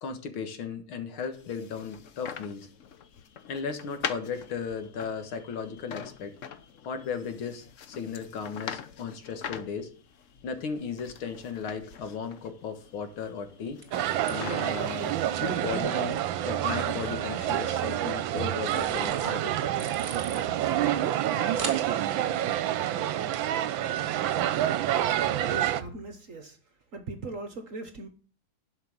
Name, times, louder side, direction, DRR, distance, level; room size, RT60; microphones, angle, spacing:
voice 1, 0.0-2.7 3.5-6.3 6.9-9.9 10.4-13.8 14.3-19.9, left 6 dB, 80° left, 2.3 m, -36 dB
sound 1, 1.3-15.8, left 7 dB, 60° left, 0.8 m, -43 dB
sound 2, 10.7-24.8, right 3 dB, 25° right, 1.8 m, -48 dB
sound 3, 13.9-25.8, right 11 dB, 75° right, 1.4 m, -28 dB
voice 2, 25.4-26.6 26.9-28.1, right 3 dB, 50° right, 1.2 m, -39 dB
11.5 x 5.7 x 7.3 m
omnidirectional pair, 2.3 m